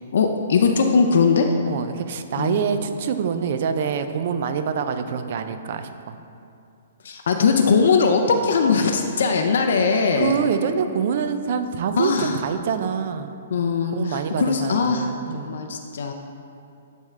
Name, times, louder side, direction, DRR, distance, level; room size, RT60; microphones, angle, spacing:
voice 1, 0.1-1.5 2.4-2.6 7.0-10.4 12.0-12.4 13.5-16.1, left 5 dB, 70° left, 4 dB, 0.4 m, -20 dB
voice 2, 1.7-6.2 10.2-13.3 13.9-15.6, right 7 dB, 55° right, 9 dB, 0.4 m, -26 dB
10.0 x 3.6 x 3.2 m, 2.6 s
hypercardioid pair, 150°, 0 cm